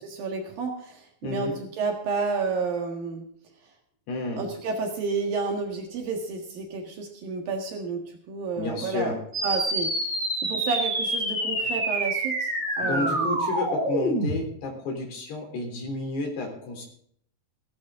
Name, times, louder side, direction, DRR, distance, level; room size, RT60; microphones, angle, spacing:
voice 1, 0.1-3.3 4.4-10.1 10.4-13.4, right 4 dB, 65° right, 2 dB, 3.3 m, -31 dB
voice 2, 1.2-1.6 4.1-4.4 8.6-9.2 12.8-16.9, left 2 dB, 85° left, 2 dB, 5.7 m, -31 dB
sound 1, 9.3-14.3, right 1 dB, 15° right, 4.4 m, -27 dB
17.0 x 14.5 x 3.7 m, 0.64 s
omnidirectional pair, 4.6 m